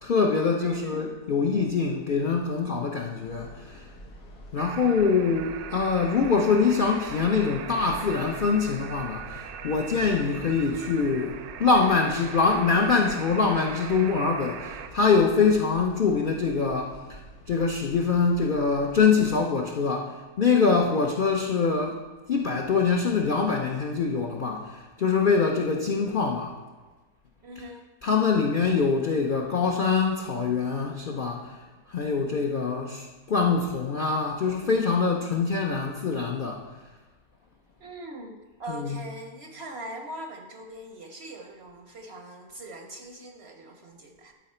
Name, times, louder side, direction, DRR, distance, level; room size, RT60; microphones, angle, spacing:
voice 1, 0.0-3.9 4.5-17.2 17.5-22.0 22.3-26.5 27.6-27.7 28.0-31.6 31.9-36.6 38.7-39.0, left 5 dB, 65° left, 1 dB, 0.5 m, -24 dB
voice 2, 0.6-1.2 20.9-21.0 27.4-27.9 37.8-44.3, right 1 dB, 60° right, 4 dB, 0.7 m, -41 dB
sound 1, 3.2-19.4, equal, 85° left, 1.9 m, -48 dB
sound 2, 4.6-14.9, right 9 dB, 75° right, 1.0 m, -41 dB
11.5 x 4.9 x 4.3 m, 1.3 s
omnidirectional pair, 1.7 m